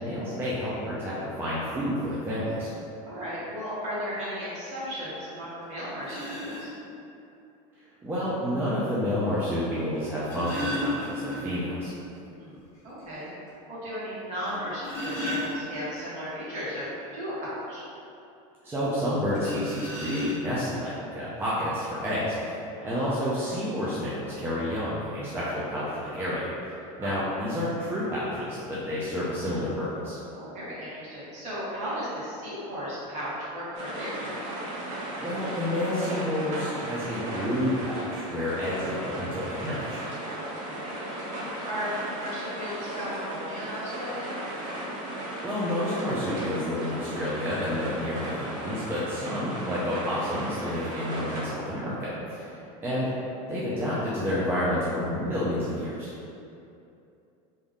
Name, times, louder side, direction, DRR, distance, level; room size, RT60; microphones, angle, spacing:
voice 1, 0.0-2.7 8.0-11.9 18.6-30.2 35.2-40.0 45.4-52.5 52.8-53.1 53.5-56.1, left 1 dB, 10° right, -9 dB, 0.4 m, -30 dB
voice 2, 3.0-6.7 12.3-13.3 13.7-17.8 22.8-23.1 27.0-27.3 30.3-34.4 40.4-40.9 41.6-44.4 52.4-52.7, equal, 40° right, -9 dB, 1.3 m, -35 dB
sound 1, 5.3-5.4 6.0-6.7 8.1-8.2 10.0-11.7 12.0-12.1 12.5-12.6 13.1-13.2 14.5-16.0 19.3-20.7 21.6-21.7 22.0-22.2, left 1 dB, 15° left, 1.3 m, -33 dB
sound 2, 33.7-51.4, right 1 dB, 65° right, 0.9 m, -36 dB
3.6 x 2.6 x 3.5 m, 2.7 s
cardioid pair, 160°, 18 cm